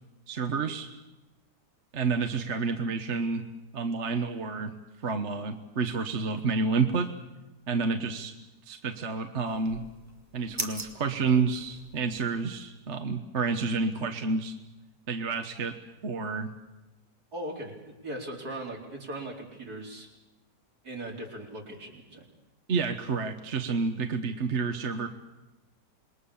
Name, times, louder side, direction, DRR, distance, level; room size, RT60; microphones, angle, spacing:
voice 1, 0.3-0.9 1.9-3.4 3.7-4.7 5.0-7.1 7.7-8.3 8.6-9.8 10.3-14.5 15.1-15.8 16.0-16.5 22.7-25.1, right 4 dB, 45° right, 6 dB, 1.4 m, -29 dB
sound 1, 9.5-12.3, right 1 dB, 10° right, 2.5 m, -41 dB
voice 2, 17.3-20.1 20.8-22.3, right 1 dB, 60° right, 0 dB, 4.7 m, -39 dB
27.5 x 22.0 x 7.1 m, 1.0 s
omnidirectional pair, 1.8 m